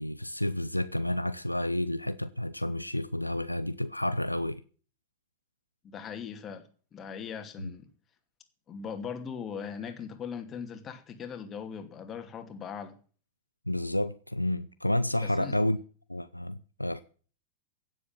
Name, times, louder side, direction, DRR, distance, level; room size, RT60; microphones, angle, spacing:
voice 1, 0.0-4.6 7.6-7.7 13.7-15.8 16.1-17.0, left 1 dB, 85° left, 0.6 m, -30 dB
voice 2, 5.8-7.9 8.7-13.0 15.2-15.6, left 7 dB, 25° left, 2.6 m, -40 dB
16.5 x 7.4 x 7.4 m
figure-of-eight pair, 90°, 0 cm